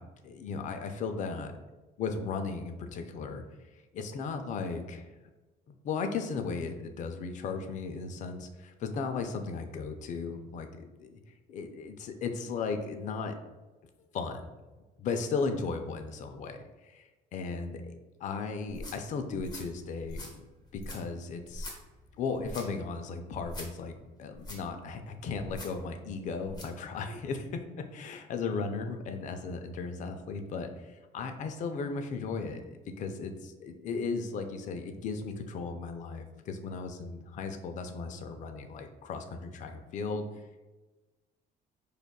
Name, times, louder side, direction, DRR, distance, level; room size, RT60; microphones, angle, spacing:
voice 1, 0.0-1.5 2.0-3.4 3.9-5.2 5.7-11.2 11.5-13.3 14.1-14.5 15.0-20.3 20.7-21.7 22.2-23.9 24.2-40.3, left 4 dB, 45° left, 6 dB, 0.4 m, -36 dB
sound 1, 18.6-26.8, left 1 dB, 25° left, 0.7 m, -46 dB
4.9 x 2.3 x 2.2 m, 1.2 s
cardioid pair, 110°, 17 cm